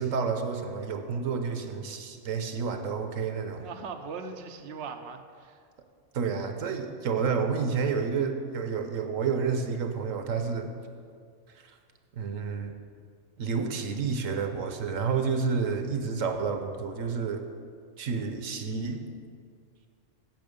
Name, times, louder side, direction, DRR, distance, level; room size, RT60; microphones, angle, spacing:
voice 1, 0.0-3.7 6.1-10.7 11.6-11.7 12.2-12.7 13.4-17.4 18.0-19.0, right 5 dB, 85° right, 6 dB, 1.3 m, -30 dB
voice 2, 3.6-5.7, right 5 dB, 60° right, 5 dB, 0.9 m, -40 dB
15.5 x 6.4 x 5.2 m, 2.1 s
omnidirectional pair, 1.3 m